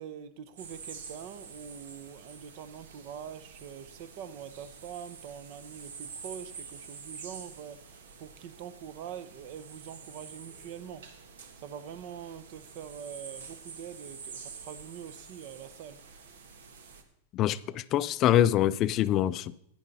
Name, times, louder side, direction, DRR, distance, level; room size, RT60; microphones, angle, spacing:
voice 1, 0.0-11.2 11.6-16.0, right 8 dB, 50° right, 0.8 m, -44 dB
sound 1, 0.6-17.0, right 5 dB, 85° right, 1.5 m, -48 dB
voice 2, 17.3-19.5, left 12 dB, 30° left, 0.4 m, -25 dB
11.0 x 10.0 x 4.1 m
supercardioid pair, 150°, 0 cm